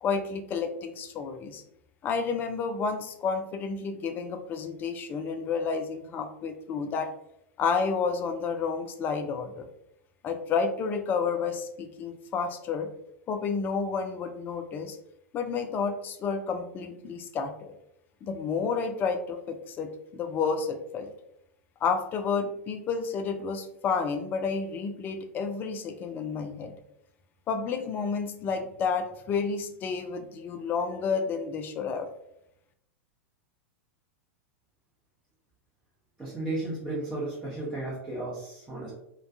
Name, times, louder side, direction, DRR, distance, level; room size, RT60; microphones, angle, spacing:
voice 1, 0.0-1.6 2.0-7.1 7.6-9.7 10.2-12.9 13.3-15.0 15.3-17.7 18.2-21.1 21.8-26.7 27.5-32.1, left 5 dB, 25° left, 6 dB, 0.3 m, -30 dB
voice 2, 36.2-38.9, right 2 dB, 15° right, -7 dB, 0.8 m, -34 dB
2.3 x 2.2 x 2.6 m, 0.80 s
figure-of-eight pair, 95°, 7 cm